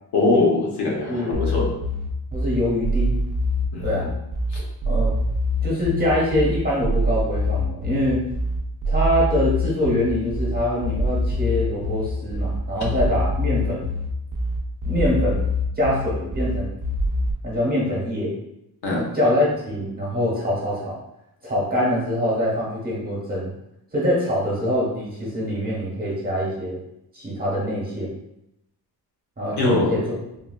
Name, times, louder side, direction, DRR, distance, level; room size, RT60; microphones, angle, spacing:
voice 1, 0.1-1.7 3.7-4.1 4.5-4.6 18.8-19.1 29.5-29.9, left 2 dB, 65° left, -3 dB, 0.9 m, -22 dB
sound 1, 1.3-17.3, left 1 dB, 50° right, 0.5 m, -24 dB
voice 2, 2.3-3.2 3.8-4.1 4.9-5.2 5.6-8.2 8.9-13.9 14.8-15.5 15.8-16.7 17.4-18.3 18.9-21.0 21.4-23.5 23.9-26.8 27.1-28.2 29.4-30.0, left 1 dB, 20° right, -6 dB, 0.9 m, -24 dB
3.7 x 2.3 x 2.3 m, 0.83 s
wide cardioid pair, 175°, 42 cm